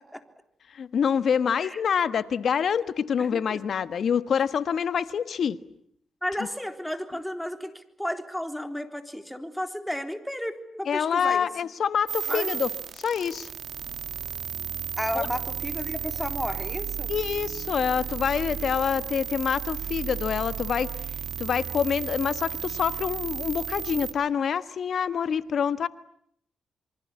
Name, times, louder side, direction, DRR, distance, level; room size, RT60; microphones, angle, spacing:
voice 1, 0.7-5.6 10.9-12.7 13.0-13.5 15.1-15.3 17.1-20.9 21.4-25.9, left 7 dB, 65° left, 13 dB, 1.4 m, -26 dB
voice 2, 3.2-3.6 6.2-11.5 12.3-12.5 15.0-17.1, equal, 5° left, 6 dB, 3.7 m, -33 dB
sound 1, 12.1-24.1, right 8 dB, 65° right, 2.2 m, -34 dB
27.0 x 24.5 x 8.5 m, 0.68 s
supercardioid pair, 50°, 0 cm